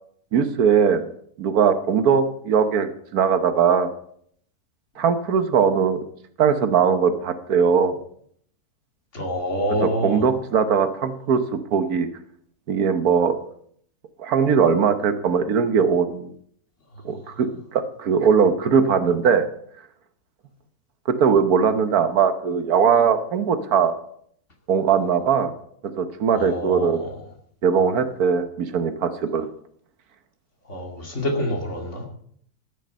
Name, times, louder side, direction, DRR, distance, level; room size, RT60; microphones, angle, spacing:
voice 1, 0.3-1.1 1.4-3.9 5.0-6.0 6.4-7.9 9.8-12.1 12.7-13.4 14.2-16.3 17.0-19.5 21.1-23.9 24.7-25.5 26.0-27.0 27.6-29.5, right 6 dB, 70° right, 10 dB, 1.4 m, -20 dB
voice 2, 9.1-10.2 26.4-27.1 30.7-32.1, equal, 50° left, 2 dB, 2.6 m, -27 dB
13.0 x 9.1 x 5.4 m, 0.64 s
omnidirectional pair, 1.7 m